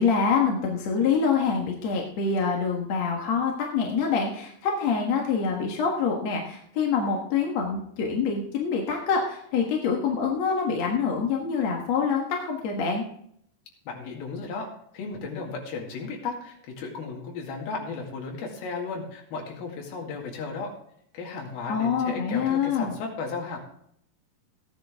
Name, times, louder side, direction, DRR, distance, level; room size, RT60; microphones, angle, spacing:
voice 1, 0.0-13.0 21.7-22.9, left 5 dB, 55° left, 0 dB, 2.2 m, -25 dB
voice 2, 13.9-20.7 21.1-23.6, left 4 dB, 75° left, 0 dB, 4.0 m, -35 dB
16.0 x 10.0 x 3.5 m, 0.67 s
omnidirectional pair, 4.4 m